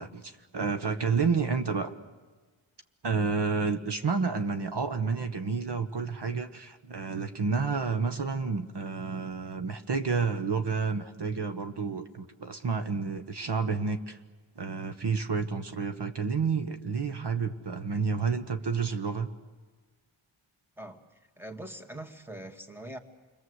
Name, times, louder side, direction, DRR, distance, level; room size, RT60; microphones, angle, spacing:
voice 1, 0.0-1.9 3.0-14.2 14.6-19.3, right 5 dB, 55° right, 7 dB, 1.4 m, -30 dB
voice 2, 21.4-23.0, right 1 dB, 5° right, 6 dB, 2.1 m, -42 dB
29.0 x 22.0 x 8.1 m, 1.3 s
wide cardioid pair, 70°, 50 cm